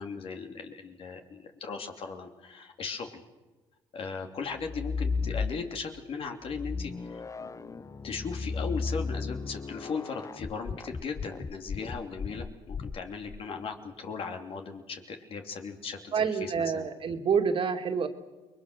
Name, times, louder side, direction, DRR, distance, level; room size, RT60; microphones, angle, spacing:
voice 1, 0.0-3.2 3.9-16.9, left 5 dB, 60° left, 4 dB, 2.9 m, -38 dB
sound 1, 4.5-5.9 6.5-13.4, left 4 dB, 30° left, 0.8 m, -35 dB
voice 2, 16.1-18.1, right 6 dB, 55° right, 5 dB, 2.3 m, -27 dB
29.0 x 21.5 x 6.7 m, 1.2 s
supercardioid pair, 75°, 11 cm